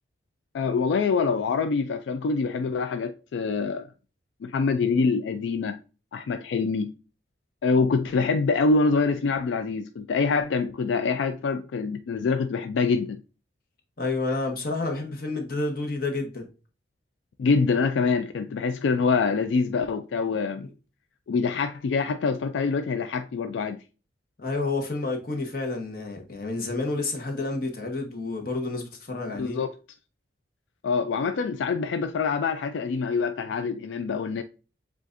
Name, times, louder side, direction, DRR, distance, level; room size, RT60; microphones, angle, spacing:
voice 1, 0.5-3.9 4.4-5.8 6.1-6.9 7.6-13.2 17.4-20.7 21.3-23.8 29.4-29.7 30.8-34.4, left 4 dB, 85° left, 0.3 m, -25 dB
voice 2, 14.0-16.5 20.6-20.7 24.4-29.6, left 3 dB, 50° left, 1.0 m, -30 dB
7.3 x 2.5 x 2.5 m
head